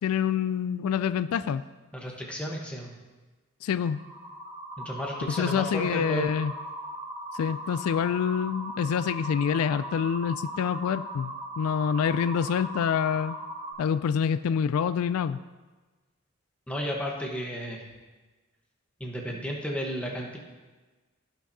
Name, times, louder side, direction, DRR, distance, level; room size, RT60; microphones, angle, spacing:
voice 1, 0.0-1.6 3.6-4.0 5.4-6.5 7.3-13.4 13.8-15.4, left 7 dB, 90° left, 14 dB, 0.3 m, -26 dB
voice 2, 1.9-2.9 4.8-6.3 16.7-17.9 19.0-20.4, equal, 5° left, -1 dB, 1.0 m, -33 dB
sound 1, 3.8-13.7, right 1 dB, 20° right, 3.1 m, -38 dB
16.0 x 5.8 x 2.7 m, 1.3 s
head